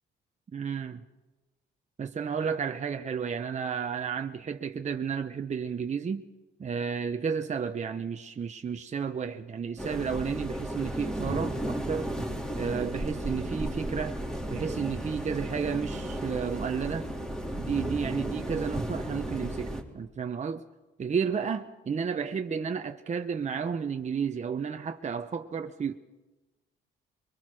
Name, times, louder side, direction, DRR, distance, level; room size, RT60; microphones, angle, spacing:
voice 1, 0.5-1.0 2.0-6.2 6.6-12.1 12.5-14.2 14.5-17.1 17.6-20.6 21.0-25.9, right 6 dB, 35° right, 0.9 m, -32 dB
sound 1, 9.8-19.8, right 1 dB, 5° left, 3.6 m, -34 dB
23.5 x 22.5 x 6.3 m
cardioid pair, 90°, 20 cm